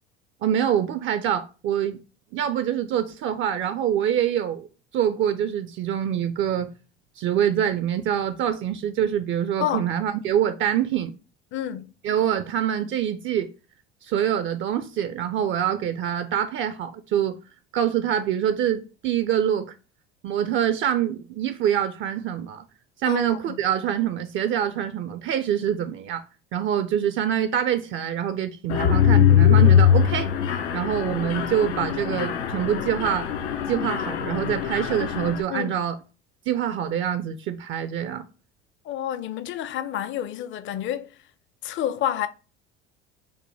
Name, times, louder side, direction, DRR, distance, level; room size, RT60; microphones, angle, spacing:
voice 1, 0.4-2.0 2.3-4.7 4.9-6.7 7.2-11.1 12.0-13.5 14.0-17.4 17.7-19.7 20.2-22.6 23.0-26.2 26.5-33.3 33.7-35.9 36.5-38.2, right 9 dB, 40° right, 0.4 m, -25 dB
voice 2, 11.5-11.9 23.1-23.6 35.5-35.8 38.8-41.2 41.6-42.3, left 11 dB, 40° left, 0.5 m, -29 dB
Mechanisms, 28.7-35.4, left 9 dB, 85° left, 0.6 m, -21 dB
5.1 x 2.1 x 3.2 m
hypercardioid pair, 65°, 32 cm